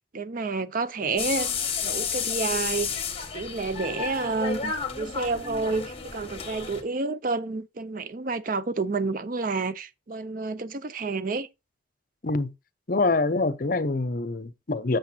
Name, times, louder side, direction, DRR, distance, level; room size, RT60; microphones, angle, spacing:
voice 1, 0.1-1.5 1.8-3.0 3.3-11.5, right 3 dB, 45° right, 0.5 m, -29 dB
sound 1, 1.2-6.8, left 6 dB, 30° left, 1.5 m, -31 dB
voice 2, 12.9-15.0, left 3 dB, 50° left, 0.7 m, -25 dB
7.8 x 6.7 x 2.8 m
head